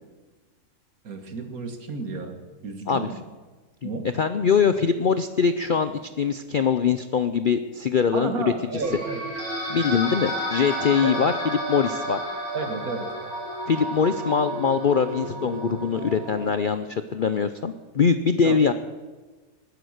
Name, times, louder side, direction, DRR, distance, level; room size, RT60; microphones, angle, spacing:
voice 1, 1.0-2.4 2.6-3.2 3.8-4.1 8.1-9.2 11.0-11.2 12.5-13.1 18.4-18.6, right 4 dB, 70° right, 7 dB, 2.1 m, -31 dB
voice 2, 3.8-5.9 6.2-8.8 9.7-11.3 11.7-12.2 13.7-18.7, left 6 dB, 60° left, 10 dB, 0.5 m, -23 dB
sound 1, 8.8-16.5, equal, 50° right, 5.0 m, -31 dB
20.0 x 9.9 x 6.5 m, 1.3 s
omnidirectional pair, 1.6 m